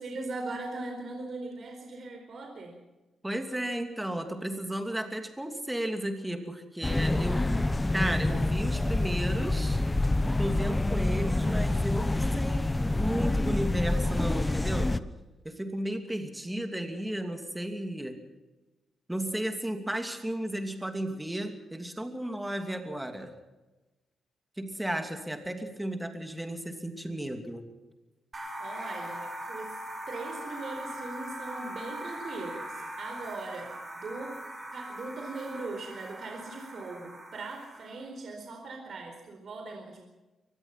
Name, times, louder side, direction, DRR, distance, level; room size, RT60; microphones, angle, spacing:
voice 1, 0.0-2.8 28.6-34.4 34.7-40.0, right 3 dB, 55° right, 3 dB, 4.4 m, -40 dB
voice 2, 3.2-7.5 7.9-9.8 10.4-14.9 15.4-18.2 19.1-23.3 24.6-27.7, right 1 dB, 10° right, 6 dB, 2.8 m, -34 dB
sound 1, 6.8-15.0, left 2 dB, 15° left, 0.9 m, -27 dB
sound 2, 28.3-38.1, equal, 30° right, 5.5 m, -41 dB
23.5 x 19.5 x 5.9 m, 1.1 s
cardioid pair, 115°, 0 cm